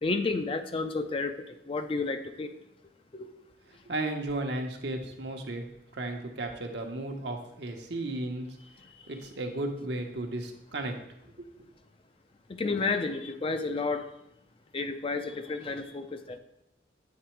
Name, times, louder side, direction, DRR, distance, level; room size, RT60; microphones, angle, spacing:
voice 1, 0.0-2.5 3.1-3.3 12.5-14.1 14.7-16.4, left 3 dB, 30° left, 8 dB, 0.5 m, -31 dB
voice 2, 3.8-5.6 5.9-8.5 9.1-10.9 11.4-11.5, right 2 dB, 70° right, 3 dB, 1.0 m, -34 dB
8.5 x 3.9 x 4.5 m, 0.84 s
head